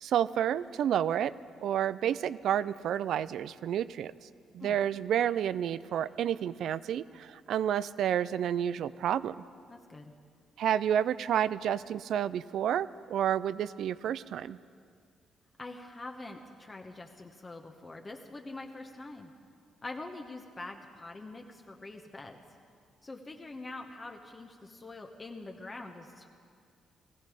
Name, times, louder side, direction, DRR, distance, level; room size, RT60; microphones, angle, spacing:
voice 1, 0.0-1.3 1.6-4.1 4.5-9.4 10.6-14.6, right 10 dB, 70° right, 17 dB, 0.4 m, -30 dB
voice 2, 9.7-10.1 15.6-19.3 19.8-22.4 23.0-26.3, left 2 dB, 25° left, 3 dB, 1.1 m, -44 dB
19.5 x 15.0 x 5.0 m, 2.2 s
cardioid pair, 90°, 0 cm